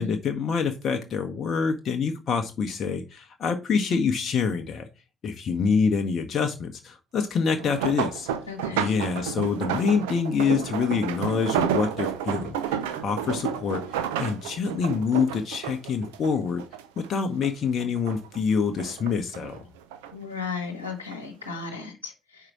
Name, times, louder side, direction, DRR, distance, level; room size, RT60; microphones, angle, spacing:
voice 1, 0.0-4.9 5.2-8.3 8.7-12.8 13.0-13.9 14.2-16.6 17.0-19.6, left 5 dB, 50° left, 6 dB, 0.8 m, -26 dB
sound 1, 7.5-17.1 17.4-18.4 18.8-20.1 20.9-21.2 21.6-21.7, right 9 dB, 70° right, 0.5 m, -31 dB
voice 2, 8.5-8.9 20.1-22.5, left 5 dB, 85° left, 0 dB, 1.1 m, -35 dB
4.9 x 4.6 x 5.9 m, 0.29 s
figure-of-eight pair, 45°, 0 cm